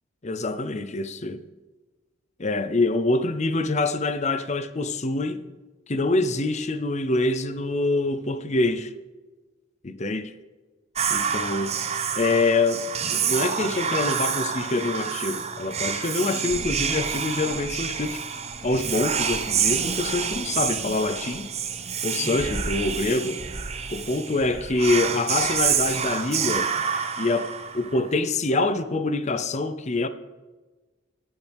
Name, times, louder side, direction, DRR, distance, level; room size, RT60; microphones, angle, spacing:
voice 1, 0.2-1.4 2.4-5.4 5.9-8.9 9.8-10.3 11.1-11.8 12.2-12.8 13.1-18.2 18.6-21.5 22.0-23.4 23.9-26.7 27.2-30.1, left 2 dB, 35° left, 0.6 m, -25 dB
Whispering, 11.0-28.1, right 7 dB, 30° right, 0.9 m, -28 dB
15.5 x 11.5 x 3.5 m
head